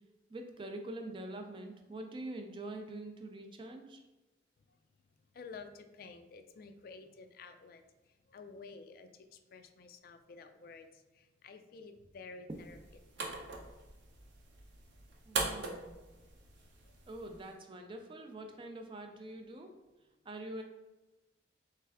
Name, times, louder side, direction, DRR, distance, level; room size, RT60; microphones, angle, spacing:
voice 1, 0.3-4.0 15.3-15.9 17.1-19.8 20.3-20.6, right 1 dB, 25° right, 4 dB, 0.4 m, -45 dB
voice 2, 5.3-12.8 16.6-16.9, left 4 dB, 50° left, 8 dB, 0.3 m, -52 dB
sound 1, 12.5-17.5, right 3 dB, 75° right, 0.7 m, -42 dB
3.4 x 3.3 x 3.4 m, 1.1 s
head